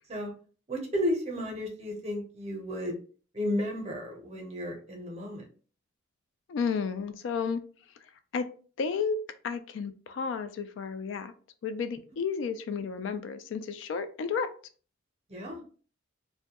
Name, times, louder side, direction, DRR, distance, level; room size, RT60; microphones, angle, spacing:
voice 1, 0.7-3.0 3.3-5.4 15.3-15.6, left 1 dB, 35° right, 1 dB, 0.6 m, -33 dB
voice 2, 6.5-7.6 8.3-8.5 8.8-9.2 9.4-11.3 11.6-14.5, left 5 dB, 65° left, 10 dB, 0.3 m, -32 dB
2.2 x 2.1 x 2.8 m, 0.40 s
head